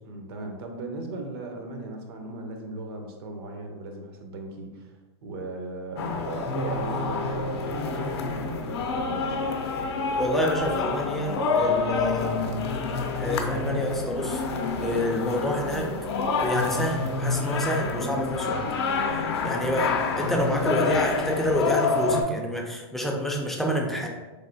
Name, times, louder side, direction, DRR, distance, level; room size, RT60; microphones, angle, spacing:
voice 1, 0.0-4.9 5.2-9.4, right 2 dB, 65° right, 3 dB, 0.6 m, -37 dB
sound 1, 6.0-22.2, left 4 dB, 75° left, 0.5 m, -28 dB
voice 2, 10.2-12.6 13.2-14.4 14.8-15.9 16.4-18.6 19.4-24.1, left 1 dB, ahead, -1 dB, 0.3 m, -28 dB
3.2 x 2.3 x 2.6 m, 1.2 s
supercardioid pair, 140°, 14 cm